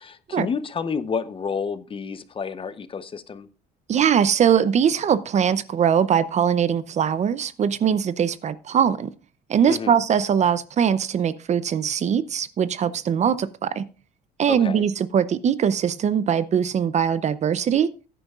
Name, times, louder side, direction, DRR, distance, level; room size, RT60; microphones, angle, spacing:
voice 1, 0.0-3.5 9.7-10.0 14.5-14.8, left 6 dB, 30° left, 0.8 m, -30 dB
voice 2, 3.9-9.1 9.5-13.9 14.4-17.9, right 8 dB, 45° right, 0.6 m, -21 dB
15.5 x 9.9 x 2.4 m
cardioid pair, 110°, 17 cm